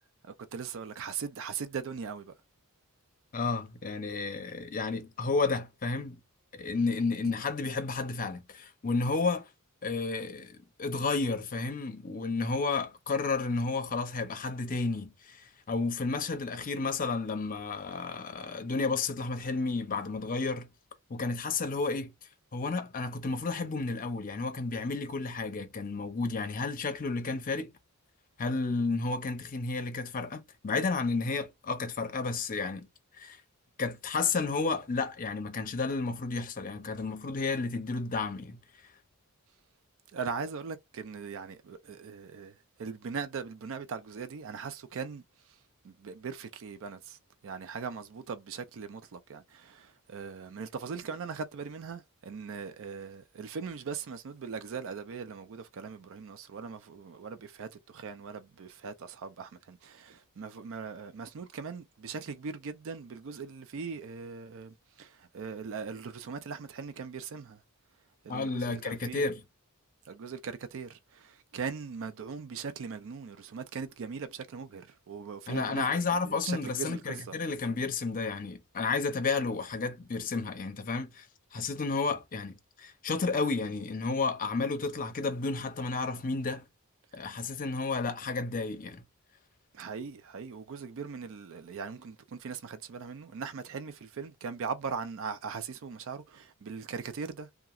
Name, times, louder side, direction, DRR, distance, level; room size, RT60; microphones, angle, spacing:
voice 1, 0.2-2.3 40.1-45.2 45.8-47.2 47.4-67.6 68.2-69.2 70.1-75.9 76.2-77.4 89.7-97.5, right 5 dB, 60° right, 0.4 m, -40 dB
voice 2, 3.3-6.2 6.5-9.5 9.8-20.7 21.1-22.1 22.5-27.7 28.4-32.9 33.2-33.4 33.8-38.6 68.3-69.4 75.5-81.3 81.5-86.6 87.1-89.0, left 4 dB, 40° left, 0.6 m, -32 dB
2.9 x 2.3 x 2.4 m
head